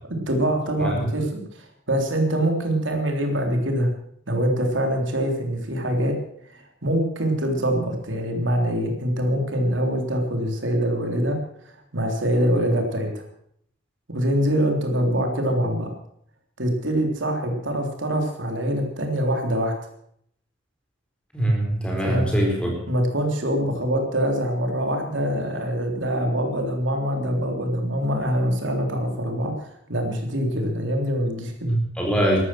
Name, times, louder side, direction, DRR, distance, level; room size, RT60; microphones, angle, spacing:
voice 1, 0.3-1.4 1.9-3.9 4.3-6.1 6.5-11.4 11.9-13.2 14.1-15.9 16.6-19.7 22.0-22.3 22.9-29.5 29.9-31.7, equal, 80° right, 3 dB, 3.5 m, -24 dB
voice 2, 21.3-22.8 31.7-32.4, right 1 dB, 5° left, 0 dB, 4.3 m, -23 dB
13.0 x 12.5 x 7.7 m, 0.69 s
head